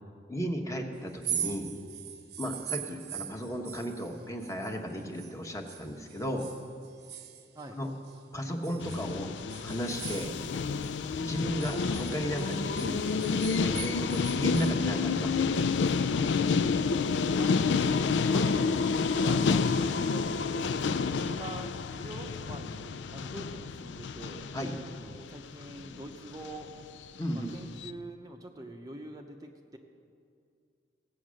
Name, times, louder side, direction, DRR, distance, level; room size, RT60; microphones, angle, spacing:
voice 1, 0.3-1.7 2.4-6.5 7.7-7.9 8.3-9.3 9.6-10.3 11.2-15.5 24.5-24.7 27.2-27.5, equal, 20° left, 2 dB, 1.1 m, -34 dB
sound 1, 1.1-5.4 5.7-8.2 8.6-11.0 11.3-14.8, right 10 dB, 65° right, 0.9 m, -41 dB
sound 2, 8.8-26.2 26.4-26.7 27.0-27.1 27.3-27.5 27.8-27.9, left 5 dB, 80° left, 0.4 m, -29 dB
voice 2, 17.4-17.9 18.3-20.8 21.2-24.5 25.0-26.7 27.3-29.8, right 1 dB, 20° right, 2 dB, 0.7 m, -45 dB
16.5 x 8.4 x 6.3 m, 2.4 s
head